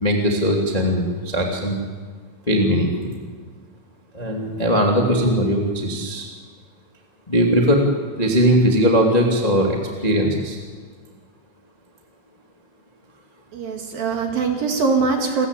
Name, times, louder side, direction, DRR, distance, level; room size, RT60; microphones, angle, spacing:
voice 1, 0.0-1.8 2.5-3.1 4.1-6.3 7.3-7.8 8.2-10.6, equal, 20° left, 0 dB, 0.9 m, -19 dB
voice 2, 13.5-15.5, right 4 dB, 55° right, 3 dB, 3.1 m, -22 dB
28.5 x 14.5 x 8.4 m, 1.5 s
omnidirectional pair, 5.7 m